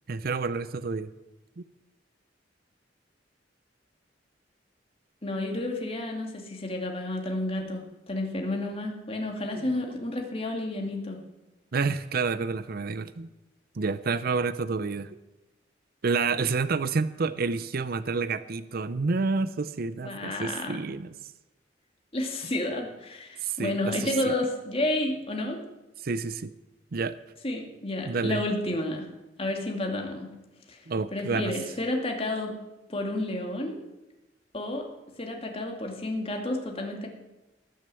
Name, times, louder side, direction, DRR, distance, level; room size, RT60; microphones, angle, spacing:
voice 1, 0.1-1.1 9.5-9.8 11.7-13.3 13.8-15.2 16.0-21.2 23.4-24.3 26.0-26.5 26.9-27.2 28.0-28.4 30.9-31.5, right 4 dB, 55° right, 14 dB, 0.6 m, -29 dB
voice 2, 5.2-11.2 20.0-20.7 22.1-25.6 27.4-29.0 29.4-30.3 30.7-30.8 31.1-32.6 32.9-33.8 34.5-34.8 35.2-37.1, left 1 dB, 35° left, 2 dB, 2.4 m, -31 dB
19.0 x 6.6 x 7.7 m, 1.0 s
head